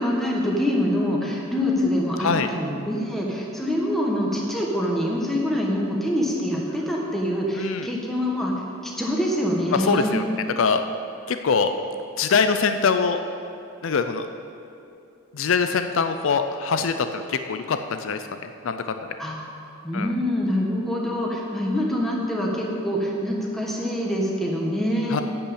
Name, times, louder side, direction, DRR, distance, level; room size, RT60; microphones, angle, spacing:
voice 1, 0.0-8.5 8.8-10.2 19.2-19.4 19.8-25.2, equal, ahead, -3 dB, 1.5 m, -25 dB
voice 2, 2.2-2.5 7.5-7.9 9.7-10.2 10.6-10.8 11.3-11.7 12.2-13.2 13.8-14.3 15.3-19.1 19.9-20.1 25.1-25.2, left 5 dB, 70° left, 8 dB, 0.5 m, -23 dB
12.0 x 5.6 x 8.5 m, 2.6 s
head